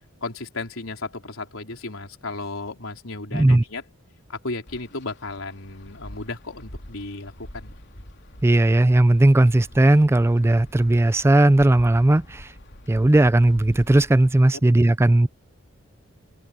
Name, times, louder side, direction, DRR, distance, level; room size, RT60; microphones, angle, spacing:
voice 1, 0.2-3.8 4.3-7.7 14.5-14.6, left 3 dB, 85° left, 3.9 m, -34 dB
voice 2, 3.3-3.6 8.4-12.5 12.9-15.3, right 1 dB, 10° right, 0.3 m, -17 dB
Wind, 4.7-14.4, equal, 60° left, 3.4 m, -44 dB
head